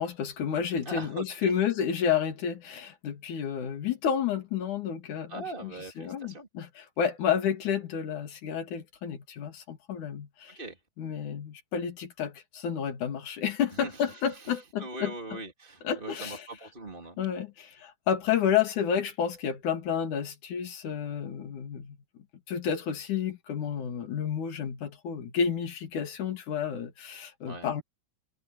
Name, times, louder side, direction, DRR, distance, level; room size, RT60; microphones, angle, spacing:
voice 1, 0.0-5.7 6.0-10.6 11.0-15.1 15.8-16.4 17.2-22.0 22.5-27.8, left 8 dB, 75° left, 3.7 m, -30 dB
voice 2, 0.8-1.5 5.3-6.5 10.5-10.8 13.7-17.2 27.4-27.7, right 2 dB, 15° right, 3.2 m, -41 dB
omnidirectional pair, 3.5 m